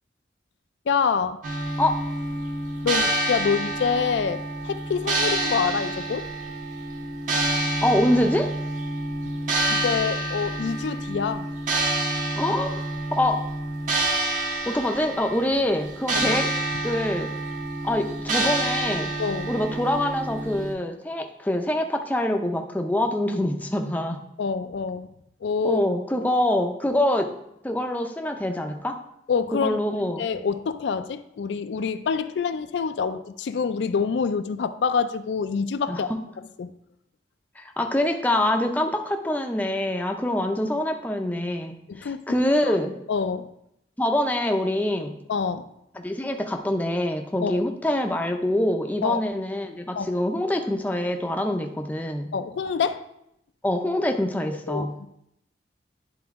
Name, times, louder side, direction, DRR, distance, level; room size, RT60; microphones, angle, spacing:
voice 1, 0.9-1.4 2.8-6.3 9.7-11.5 16.2-16.4 19.2-19.5 24.4-25.1 25.4-25.8 29.3-36.1 36.6-36.7 41.9-42.4 42.7-42.8 43.1-43.5 45.3-45.7 47.4-47.6 49.0-49.2 50.0-50.1 52.3-53.0 54.7-55.1, left 6 dB, 80° left, 11 dB, 0.4 m, -26 dB
sound 1, 1.4-20.7, right 2 dB, 45° right, 0.8 m, -28 dB
voice 2, 7.8-8.5 12.4-12.7 13.1-13.4 14.7-16.5 16.8-17.3 17.8-19.1 19.5-24.2 25.6-27.3 27.6-29.0 29.5-30.3 35.9-36.2 37.6-42.9 44.0-45.2 45.9-52.3 53.6-54.9, left 1 dB, 10° left, 4 dB, 0.4 m, -25 dB
10.5 x 3.9 x 3.5 m, 0.79 s
head